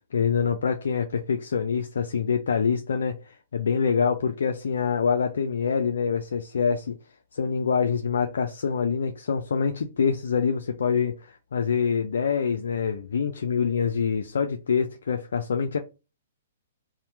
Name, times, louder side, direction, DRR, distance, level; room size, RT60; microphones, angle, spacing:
voice 1, 0.1-7.0 7.3-15.8, left 6 dB, 75° left, 0.4 m, -25 dB
2.8 x 2.1 x 3.2 m
hypercardioid pair, 125°, 0 cm